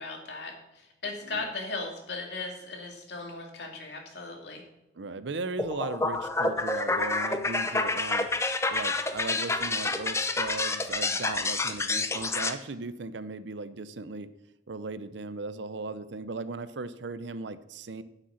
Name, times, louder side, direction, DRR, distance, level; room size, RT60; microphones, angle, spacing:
voice 1, 0.0-4.6, left 3 dB, 65° left, 2 dB, 2.3 m, -37 dB
voice 2, 4.9-8.3 8.7-14.3 14.7-18.0, right 3 dB, 75° right, 14 dB, 0.6 m, -37 dB
sound 1, 5.6-12.5, left 3 dB, 15° left, 0.6 m, -28 dB
9.1 x 7.7 x 5.7 m, 0.95 s
head